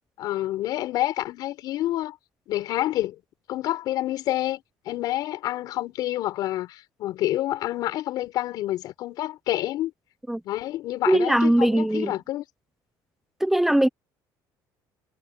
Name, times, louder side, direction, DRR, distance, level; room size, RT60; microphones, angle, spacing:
voice 1, 0.2-2.2 2.5-3.2 3.5-9.9 10.4-12.4, left 14 dB, 55° left, 5.8 m, -28 dB
voice 2, 11.1-12.1 13.4-13.9, right 1 dB, 5° right, 0.8 m, -20 dB
cardioid pair, 160°, 8 cm